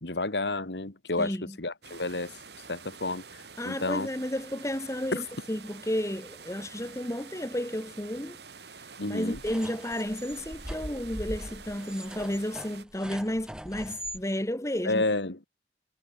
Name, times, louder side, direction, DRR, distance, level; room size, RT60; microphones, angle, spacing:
voice 1, 0.0-2.3 2.7-4.1 5.1-5.2 9.0-9.4 14.9-15.5, left 2 dB, 75° left, 2.2 m, -30 dB
voice 2, 1.2-1.6 3.6-8.4 9.1-15.0, left 1 dB, 15° left, 1.8 m, -32 dB
sound 1, 1.8-12.8, right 5 dB, 70° right, 5.0 m, -48 dB
sound 2, 9.3-14.2, equal, 5° right, 1.9 m, -41 dB
head